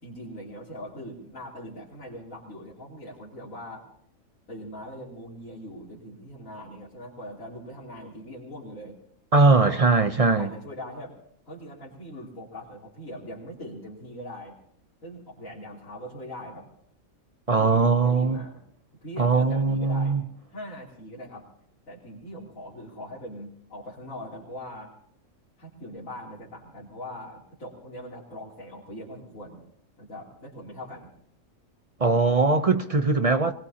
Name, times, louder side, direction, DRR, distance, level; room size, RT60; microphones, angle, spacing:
voice 1, 0.0-3.8 4.5-9.0 9.7-11.1 11.5-14.6 15.0-16.7 17.5-18.6 19.0-20.2 20.5-21.5 21.9-24.9 25.6-29.6 30.0-31.1, equal, 75° left, 3.4 m, -41 dB
voice 2, 9.3-10.5 17.5-18.4 19.2-20.2 32.0-33.5, right 3 dB, 40° right, 0.5 m, -20 dB
25.0 x 20.5 x 2.8 m
omnidirectional pair, 1.4 m